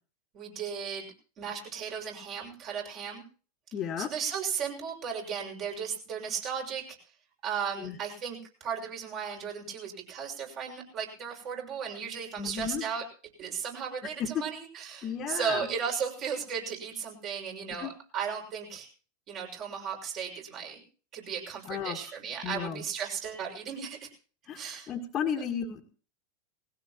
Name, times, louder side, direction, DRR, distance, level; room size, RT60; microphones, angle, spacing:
voice 1, 0.3-3.2 4.0-6.8 7.4-13.0 13.4-18.9 19.3-20.8 21.1-24.1 24.5-24.9, right 7 dB, 45° right, 0 dB, 6.5 m, -35 dB
voice 2, 3.7-4.1 7.8-7.9 12.4-12.8 14.2-14.4 15.0-15.7 17.8-17.9 21.7-22.0 22.4-22.8 24.5-25.8, left 8 dB, 35° left, 0 dB, 2.0 m, -33 dB
20.0 x 16.5 x 3.0 m, 0.39 s
hypercardioid pair, 90°, 0 cm